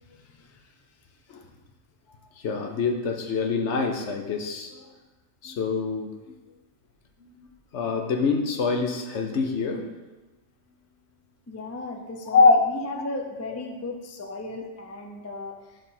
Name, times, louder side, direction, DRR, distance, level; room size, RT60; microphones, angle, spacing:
voice 1, 0.1-0.8 11.5-15.8, left 2 dB, 20° left, 3 dB, 0.4 m, -36 dB
voice 2, 2.4-4.9 5.4-6.3 7.2-9.8 12.3-12.6, left 4 dB, 65° left, 3 dB, 1.0 m, -24 dB
5.1 x 4.7 x 5.6 m, 1.1 s
omnidirectional pair, 1.3 m